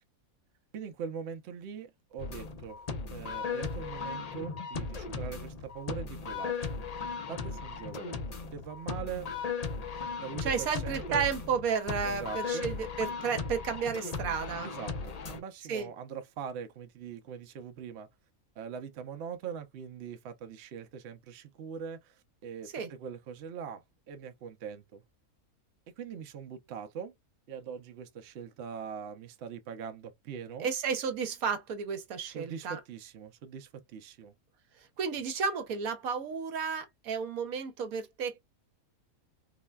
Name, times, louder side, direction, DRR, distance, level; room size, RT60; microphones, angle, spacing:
voice 1, 0.7-2.8 3.1-6.8 7.3-8.2 8.5-9.3 10.2-11.3 12.0-12.6 14.6-18.1 18.6-25.0 26.0-27.1 27.5-30.7 32.3-34.3, right 7 dB, 60° right, 0.8 m, -42 dB
sound 1, 2.2-15.4, left 5 dB, 60° left, 0.4 m, -37 dB
voice 2, 10.4-14.7 15.7-15.9 22.7-22.9 30.6-32.8 35.0-38.4, right 6 dB, 80° right, 1.2 m, -32 dB
3.8 x 2.1 x 2.2 m
omnidirectional pair, 1.5 m